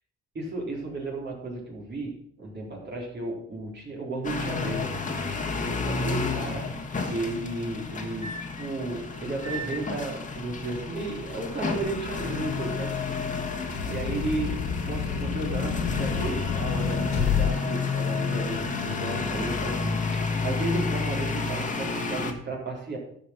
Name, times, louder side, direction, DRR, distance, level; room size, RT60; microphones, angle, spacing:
voice 1, 0.3-4.9 5.8-6.7 7.0-12.9 13.8-23.0, right 2 dB, 35° right, -2 dB, 3.9 m, -33 dB
sound 1, 4.2-22.3, left 4 dB, 25° left, 1.5 m, -31 dB
sound 2, 10.7-17.5, left 7 dB, 70° left, 1.7 m, -32 dB
12.5 x 5.2 x 5.9 m, 0.68 s
cardioid pair, 115°, 29 cm